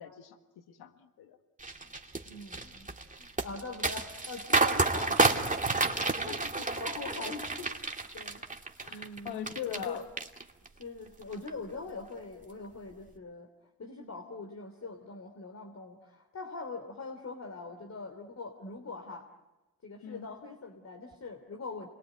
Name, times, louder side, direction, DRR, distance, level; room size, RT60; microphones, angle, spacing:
voice 1, 0.0-1.4 6.3-6.7 8.8-10.0 20.0-20.3, left 10 dB, 85° left, 7 dB, 1.7 m, -41 dB
sound 1, 1.6-9.9 10.2-10.8 11.2-11.5, right 3 dB, 20° right, 2.4 m, -30 dB
voice 2, 2.3-2.9 3.2-5.6 6.0-7.7 8.1-8.4 8.9-9.4 9.7-10.0 10.8-13.5 13.8-19.3 19.8-21.9, left 3 dB, 45° left, 4 dB, 3.2 m, -42 dB
27.5 x 22.0 x 9.3 m, 1.1 s
supercardioid pair, 60°, 37 cm